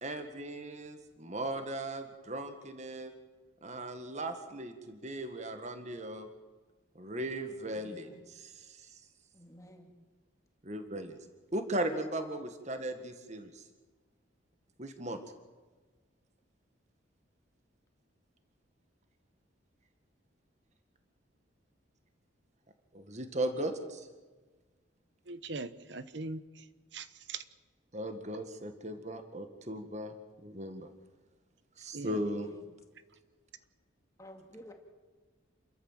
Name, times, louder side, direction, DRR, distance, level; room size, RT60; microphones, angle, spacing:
voice 1, 0.0-3.1 3.6-6.3 7.0-8.8 10.6-11.2 11.5-13.6 14.8-15.2 22.9-24.1 27.9-30.9 31.8-32.5, right 1 dB, 35° right, 7 dB, 1.8 m, -37 dB
voice 2, 7.7-8.3 9.3-9.9 31.8-31.9 32.2-32.6 34.2-34.7, equal, 15° left, 3 dB, 2.4 m, -53 dB
voice 3, 25.3-26.6 26.9-27.4 31.9-32.2, right 3 dB, 60° right, 13 dB, 1.1 m, -41 dB
28.5 x 13.5 x 7.5 m, 1.3 s
head